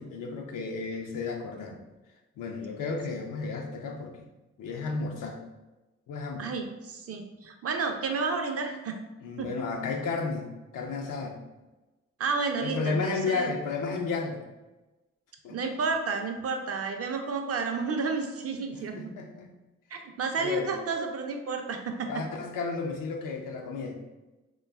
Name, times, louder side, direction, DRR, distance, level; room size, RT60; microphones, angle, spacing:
voice 1, 0.0-1.8 2.4-4.3 4.6-5.4 6.1-6.5 9.2-10.5 10.7-11.4 12.6-14.4 15.4-15.6 18.9-19.5 20.4-20.7 22.1-24.0, left 4 dB, 80° left, 3 dB, 0.5 m, -32 dB
voice 2, 6.4-9.0 9.4-9.5 12.2-13.5 15.5-19.1 19.9-22.2, right 4 dB, 50° right, 4 dB, 0.5 m, -31 dB
2.5 x 2.3 x 2.2 m, 1.1 s
supercardioid pair, 40°, 32 cm